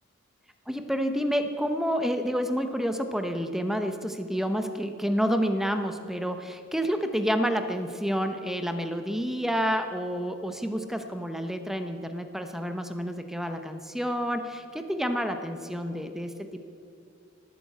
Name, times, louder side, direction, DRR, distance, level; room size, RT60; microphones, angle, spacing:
voice 1, 0.7-16.6, equal, ahead, 7 dB, 0.9 m, -29 dB
19.0 x 9.1 x 8.4 m, 2.4 s
head